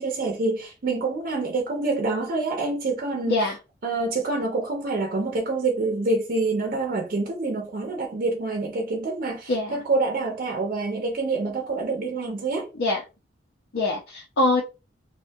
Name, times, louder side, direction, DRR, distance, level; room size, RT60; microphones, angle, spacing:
voice 1, 0.0-3.4 3.8-12.7, right 3 dB, 50° right, 0.5 m, -26 dB
voice 2, 13.7-14.6, left 2 dB, 75° left, 0.6 m, -23 dB
2.5 x 2.2 x 2.6 m
head